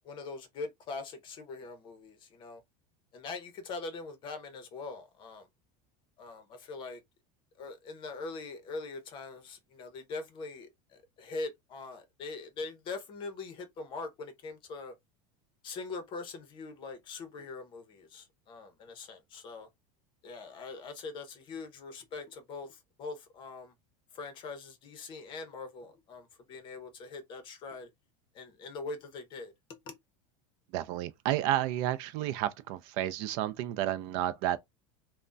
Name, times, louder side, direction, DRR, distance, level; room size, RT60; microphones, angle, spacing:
voice 1, 0.0-2.6 3.1-5.5 6.2-7.0 7.6-14.9 15.6-19.7 20.2-23.7 24.1-27.9 28.3-29.5 29.9-30.0, left 3 dB, 30° left, 0.7 m, -42 dB
voice 2, 30.7-34.6, right 13 dB, 55° right, 0.4 m, -31 dB
3.4 x 2.1 x 2.5 m
supercardioid pair, 160°, 16 cm